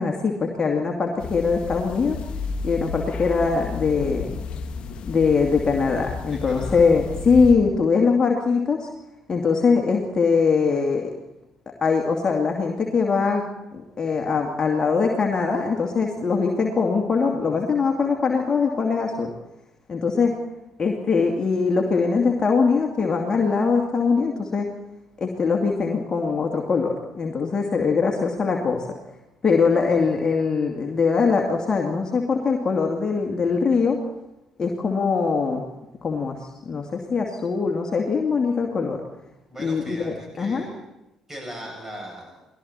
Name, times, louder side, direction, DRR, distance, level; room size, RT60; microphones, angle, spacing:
voice 1, 0.0-2.2 2.6-4.3 5.1-8.9 9.3-11.1 11.8-13.4 13.7-19.3 19.9-20.3 20.8-24.7 25.2-28.9 29.4-34.0 34.6-35.6 36.0-39.0 39.6-40.7, left 5 dB, 35° left, 0 dB, 2.4 m, -22 dB
sound 1, 1.2-7.5, left 5 dB, 50° left, 1.6 m, -32 dB
voice 2, 6.3-6.9 39.5-40.7 41.3-42.4, equal, 15° right, 0 dB, 7.8 m, -39 dB
29.5 x 20.0 x 4.4 m, 0.95 s
figure-of-eight pair, 45°, 2 cm